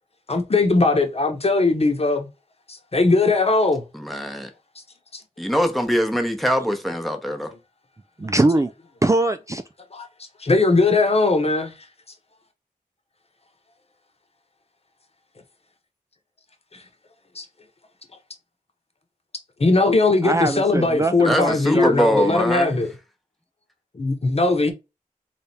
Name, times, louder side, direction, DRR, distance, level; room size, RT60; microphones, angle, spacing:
voice 1, 0.3-2.3 2.7-3.8 5.1-5.2 9.9-10.1 10.4-11.7 16.7-16.8 17.3-17.4 19.6-22.9 23.9-24.7, left 3 dB, 45° left, 1.0 m, -19 dB
voice 2, 3.9-4.5 5.4-7.5 21.2-22.8, equal, ahead, 0.9 m, -23 dB
voice 3, 8.2-8.7 9.0-9.6 20.2-22.4, right 2 dB, 20° right, 0.4 m, -22 dB
3.5 x 3.4 x 4.1 m
wide cardioid pair, 90°, 14 cm